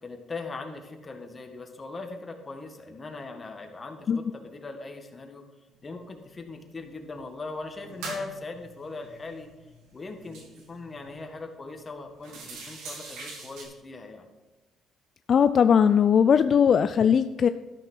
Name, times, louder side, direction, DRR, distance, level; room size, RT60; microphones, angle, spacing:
voice 1, 0.0-5.4 5.8-9.5 9.9-14.3, left 3 dB, 30° left, 5 dB, 1.7 m, -40 dB
sound 1, 5.8-5.9 6.3-7.1 7.5-11.2 11.6-11.7 12.1-13.6, right 3 dB, 90° right, 3.0 m, -44 dB
voice 2, 15.3-17.5, left 7 dB, 50° left, 11 dB, 0.3 m, -19 dB
13.0 x 5.9 x 6.1 m, 1.2 s
cardioid pair, 90°, 0 cm